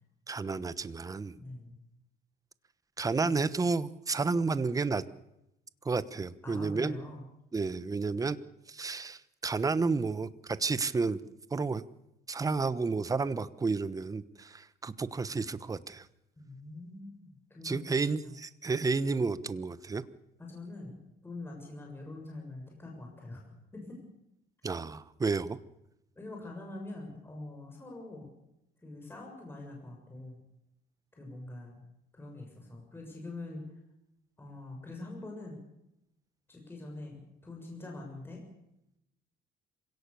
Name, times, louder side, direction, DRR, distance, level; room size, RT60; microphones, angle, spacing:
voice 1, 0.3-1.3 3.0-5.0 5.8-7.0 7.5-8.4 8.7-11.2 11.5-11.8 12.3-16.1 17.6-20.0 24.6-25.6, right 4 dB, 20° right, 15 dB, 1.1 m, -31 dB
voice 2, 1.3-1.8 3.1-3.4 6.4-7.2 16.4-18.4 20.4-24.0 26.1-28.3 28.8-30.4 31.1-31.8 32.1-33.7 34.4-35.6 36.5-38.4, left 2 dB, 15° left, 0 dB, 6.8 m, -44 dB
26.5 x 17.5 x 7.0 m, 0.85 s
cardioid pair, 110°, 17 cm